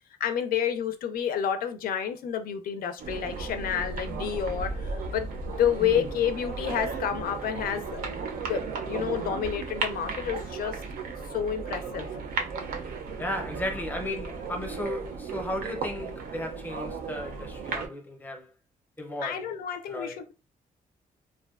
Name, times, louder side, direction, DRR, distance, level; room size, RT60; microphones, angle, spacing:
voice 1, 0.2-8.1 8.5-10.8 11.3-12.1 19.2-20.3, left 8 dB, 85° left, 0.4 m, -29 dB
sound 1, 3.0-17.9, right 4 dB, 80° right, 0.5 m, -35 dB
voice 2, 13.2-18.5 19.0-19.5 19.9-20.2, left 1 dB, 10° left, 0.5 m, -35 dB
2.5 x 2.2 x 2.3 m
cardioid pair, 130°, 15 cm